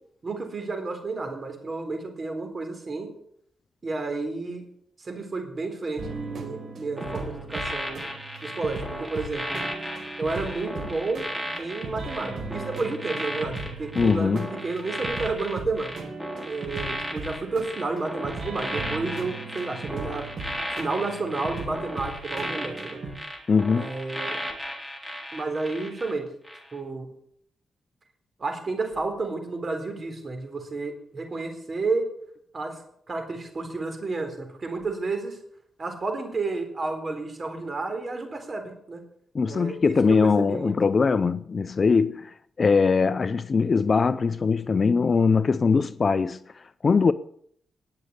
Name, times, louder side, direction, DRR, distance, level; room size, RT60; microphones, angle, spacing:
voice 1, 0.2-3.1 3.8-4.6 5.0-8.0 8.4-9.6 10.2-11.3 11.6-15.9 16.5-20.3 20.7-23.0 23.8-24.4 25.3-26.2 26.7-27.1 28.4-32.0 32.5-32.8 33.1-35.4 35.8-39.0 39.5-40.7, right 3 dB, 35° right, 3.9 m, -31 dB
sound 1, 6.0-23.1, right 3 dB, 65° right, 4.4 m, -38 dB
sound 2, 7.0-26.1 26.5-26.7, equal, 10° right, 3.7 m, -35 dB
voice 2, 14.0-14.5 23.5-23.9 39.3-47.1, left 5 dB, 40° left, 0.5 m, -22 dB
19.5 x 6.6 x 8.2 m
cardioid pair, 110°, 0 cm